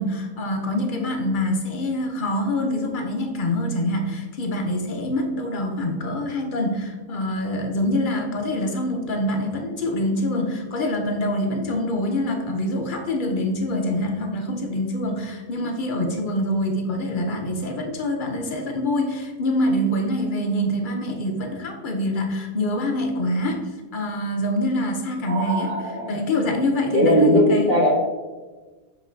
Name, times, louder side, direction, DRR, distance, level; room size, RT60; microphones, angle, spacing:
voice 1, 0.0-25.7 26.1-27.7, left 1 dB, 60° left, 3 dB, 0.5 m, -25 dB
voice 2, 25.2-26.2 26.9-27.9, equal, 55° right, -6 dB, 1.6 m, -19 dB
7.2 x 3.2 x 4.4 m, 1.3 s
omnidirectional pair, 1.7 m